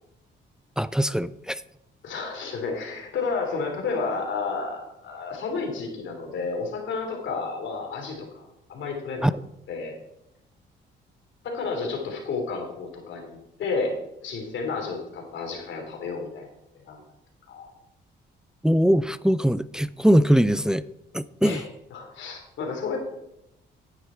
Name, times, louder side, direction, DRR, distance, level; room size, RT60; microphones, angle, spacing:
voice 1, 0.8-1.6 9.2-9.3 18.6-20.8 21.1-21.6, equal, 5° right, 0.3 m, -21 dB
voice 2, 2.0-9.3 9.7-10.0 11.4-13.9 14.2-16.5 16.8-17.0 17.5-17.7 21.4-23.0, left 4 dB, 70° left, 3.2 m, -31 dB
10.5 x 9.5 x 4.3 m
cardioid pair, 90°, 20 cm